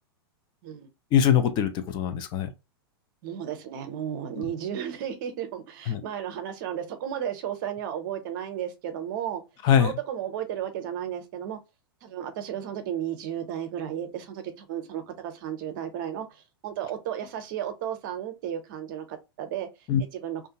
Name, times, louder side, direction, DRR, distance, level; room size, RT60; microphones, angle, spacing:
voice 1, 1.1-2.5 4.4-4.5 5.9-6.0 9.6-9.9 19.9-20.0, left 9 dB, 35° left, 0.5 m, -22 dB
voice 2, 3.2-9.4 9.8-11.6 12.0-19.7 20.1-20.5, right 9 dB, 55° right, 0.7 m, -34 dB
2.5 x 2.2 x 2.8 m
hypercardioid pair, 110°, 13 cm